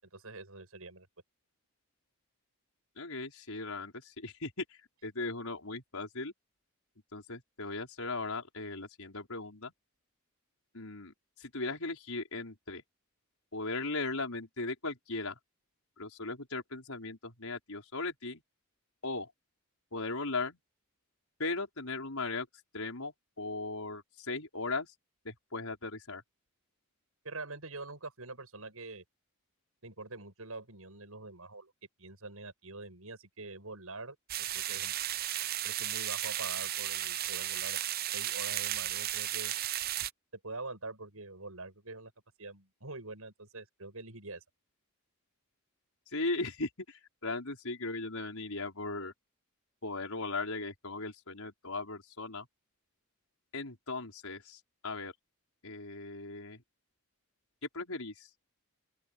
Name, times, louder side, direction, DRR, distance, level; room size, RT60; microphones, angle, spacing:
voice 1, 0.0-1.1 27.2-29.0 29.8-31.7 32.0-34.9 35.6-37.8 38.1-39.5 40.4-42.1 42.4-44.4, right 3 dB, 80° right, 7.0 m, -45 dB
voice 2, 3.0-4.6 5.0-6.3 7.1-9.7 10.7-11.1 11.4-12.8 13.5-15.4 16.0-18.4 19.0-19.3 19.9-20.6 21.4-22.5 22.7-24.9 25.2-26.2 46.1-49.1 49.8-52.5 53.5-55.1 55.6-56.6 57.7-58.3, left 3 dB, 80° left, 5.1 m, -38 dB
sound 1, 34.3-40.1, right 13 dB, 45° right, 0.6 m, -34 dB
open air
head